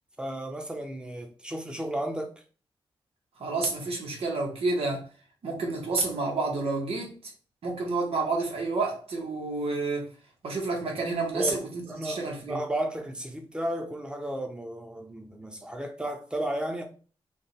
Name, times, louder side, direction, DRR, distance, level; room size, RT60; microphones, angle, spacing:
voice 1, 0.2-2.3 11.3-11.6 11.9-12.2 12.5-16.8, right 1 dB, 10° right, 1.0 m, -33 dB
voice 2, 3.4-5.1 5.4-7.3 7.6-10.1 10.4-11.7 12.0-12.6, right 3 dB, 80° right, 1.8 m, -29 dB
5.4 x 2.8 x 3.4 m
wide cardioid pair, 130°, 10 cm